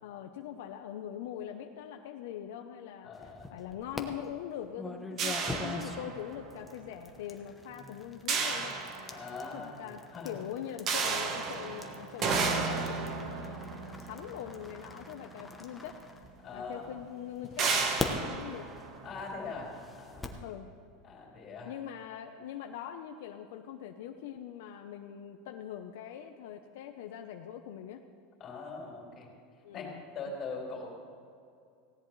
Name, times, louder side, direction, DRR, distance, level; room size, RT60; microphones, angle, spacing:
voice 1, 0.0-8.8 9.5-16.0 16.5-18.7 20.3-20.7 21.6-28.0 29.6-30.0, left 10 dB, 70° left, 5 dB, 0.8 m, -42 dB
voice 2, 3.0-3.5 9.1-10.4 16.4-16.9 19.0-20.4 21.0-21.7 28.4-29.3 29.7-30.9, left 4 dB, 25° left, -2 dB, 4.1 m, -42 dB
sound 1, 3.1-4.0 4.7-16.8 17.4-20.5, left 3 dB, 10° left, 0.9 m, -43 dB
sound 2, 5.2-6.5 8.3-9.6 10.9-15.3 16.2-16.3 16.7-16.9 17.6-19.6, right 4 dB, 30° right, 1.2 m, -33 dB
18.5 x 17.0 x 3.3 m, 2.5 s
supercardioid pair, 170°, 0 cm